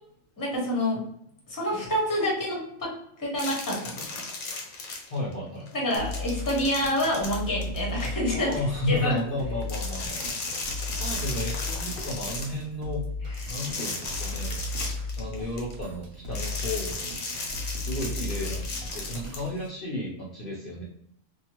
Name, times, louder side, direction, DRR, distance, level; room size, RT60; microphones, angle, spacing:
voice 1, 0.4-1.0 1.5-2.9 3.2-4.1 5.7-8.5 8.9-9.2 10.1-10.3 13.4-13.5, left 1 dB, 20° left, -3 dB, 0.8 m, -27 dB
sound 1, 3.4-5.3 5.7-8.5 9.6-12.6 13.3-15.7 16.3-19.4, left 3 dB, 80° left, 1.2 m, -35 dB
voice 2, 5.1-5.7 8.3-10.3 11.0-13.1 13.5-14.7 15.2-17.1 17.8-18.7 18.9-20.8, left 1 dB, 55° left, -5 dB, 0.7 m, -33 dB
sound 2, 6.0-19.7, left 1 dB, 90° right, 1.1 m, -36 dB
2.7 x 2.3 x 2.9 m, 0.74 s
omnidirectional pair, 1.4 m